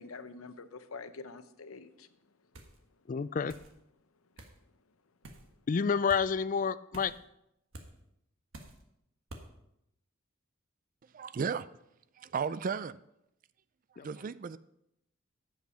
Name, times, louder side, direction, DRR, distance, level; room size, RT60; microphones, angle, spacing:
voice 1, 0.0-2.1, left 4 dB, 85° left, 11 dB, 0.8 m, -46 dB
sound 1, 2.5-2.8 3.5-3.7 4.4-4.6 5.2-5.5 6.1-6.3 6.9-7.2 7.7-7.9 8.5-8.8 9.3-9.5, right 1 dB, 70° right, 1.4 m, -48 dB
voice 2, 3.1-3.5 5.7-7.1 14.0-14.1, left 6 dB, 40° left, 16 dB, 0.3 m, -29 dB
voice 3, 11.1-11.7 12.2-13.0 14.0-14.6, right 6 dB, 40° right, 16 dB, 0.3 m, -34 dB
10.0 x 8.1 x 5.6 m, 0.82 s
head